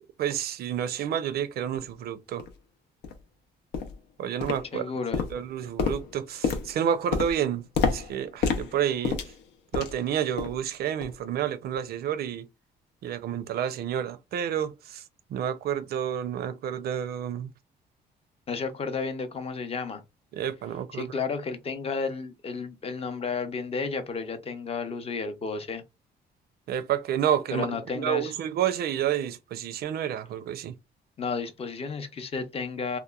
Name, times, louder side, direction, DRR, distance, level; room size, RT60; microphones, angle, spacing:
voice 1, 0.2-2.5 4.2-4.9 5.3-9.2 9.7-12.5 13.0-15.0 15.3-17.5 20.3-21.2 26.7-27.7 28.0-30.8, right 9 dB, 65° right, 0.5 m, -29 dB
sound 1, 1.7-1.8 2.4-2.5 3.0-3.2 3.7-4.0 4.4-4.9 5.1-10.1 10.4-10.7 11.0-11.2 11.7-11.8, left 5 dB, 85° left, 0.6 m, -30 dB
voice 2, 4.7-5.2 18.5-20.0 20.9-25.8 27.5-28.3 31.2-33.0, left 4 dB, 35° left, 0.6 m, -32 dB
2.9 x 2.1 x 2.3 m
cardioid pair, 110°, 17 cm